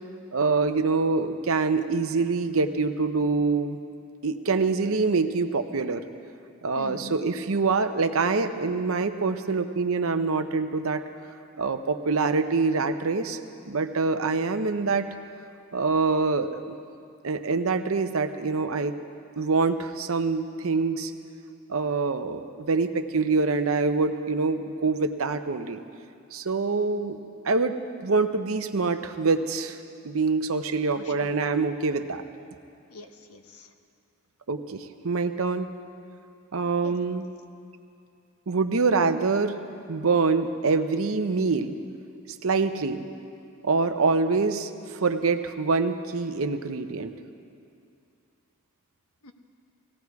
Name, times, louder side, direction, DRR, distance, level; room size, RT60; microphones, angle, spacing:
voice 1, 0.3-3.8 4.2-6.0 6.6-11.0 11.6-13.4 13.7-15.1 15.7-16.7 17.2-18.9 19.4-21.1 21.7-25.8 26.3-27.2 27.4-27.8 28.0-29.8 30.0-32.2 34.5-35.7 36.5-37.2 38.5-39.6 39.9-41.7 42.4-43.0 43.6-47.1, right 4 dB, 70° right, 8 dB, 0.8 m, -25 dB
voice 2, 6.8-7.2 30.9-31.3 32.9-33.7 36.8-37.0 49.2-49.3, left 2 dB, 85° left, 6 dB, 1.1 m, -43 dB
18.0 x 17.0 x 4.7 m, 2.4 s
head